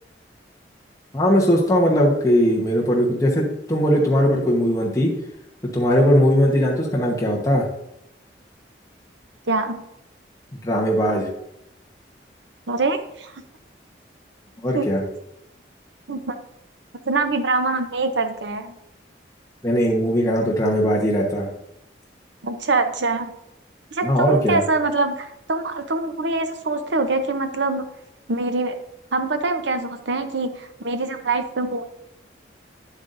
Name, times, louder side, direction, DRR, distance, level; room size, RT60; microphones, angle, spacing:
voice 1, 1.1-5.1 5.7-7.7 10.6-11.3 14.6-15.0 19.6-21.5 24.0-24.6, equal, 20° left, -4 dB, 1.1 m, -19 dB
voice 2, 9.5-9.8 12.7-13.3 14.7-14.9 16.1-16.4 17.1-18.7 22.4-23.3 23.9-27.9 28.3-28.8 29.1-31.8, right 3 dB, 80° right, 8 dB, 0.8 m, -24 dB
9.6 x 8.0 x 2.6 m, 0.82 s
head